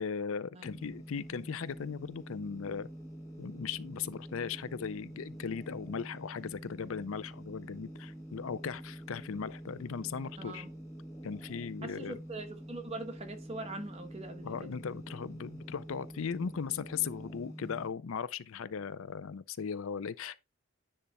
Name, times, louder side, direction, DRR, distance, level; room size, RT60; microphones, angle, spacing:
voice 1, 0.0-2.9 3.4-10.7 11.2-12.2 14.4-20.4, left 6 dB, 65° left, 0.5 m, -38 dB
sound 1, 0.6-17.9, equal, 15° left, 2.0 m, -46 dB
voice 2, 10.4-10.7 11.8-14.7, right 2 dB, 30° right, 1.3 m, -42 dB
10.0 x 3.4 x 4.2 m
head